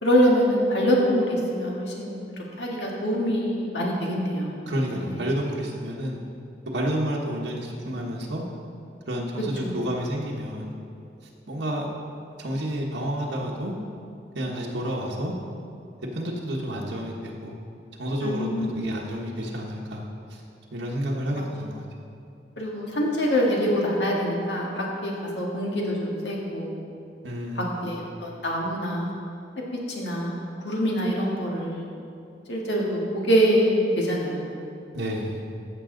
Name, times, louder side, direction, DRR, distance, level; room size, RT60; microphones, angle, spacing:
voice 1, 0.0-5.2 9.6-9.8 18.2-18.7 21.4-21.5 22.6-26.8 27.6-29.2 29.9-31.9 32.5-34.6, equal, 75° left, -2 dB, 1.8 m, -25 dB
voice 2, 4.7-6.2 6.7-8.4 9.1-10.7 11.5-11.9 12.4-13.7 14.3-15.3 16.1-17.6 18.0-20.0 20.3-20.4 20.7-21.8 27.2-27.9 34.9-35.4, equal, 90° right, -3 dB, 1.2 m, -30 dB
14.0 x 6.9 x 3.9 m, 2.6 s
head